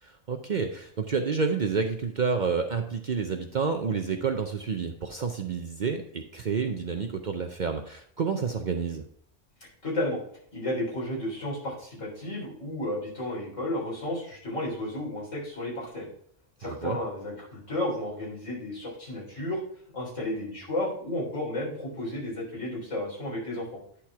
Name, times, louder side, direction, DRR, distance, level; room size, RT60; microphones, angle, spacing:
voice 1, 0.0-9.0 16.6-17.0, right 5 dB, 50° right, 5 dB, 0.6 m, -29 dB
voice 2, 9.8-10.2 10.5-16.1 16.6-19.6 19.9-23.7, left 1 dB, 85° left, -5 dB, 4.0 m, -32 dB
10.0 x 4.4 x 4.7 m, 0.65 s
omnidirectional pair, 1.3 m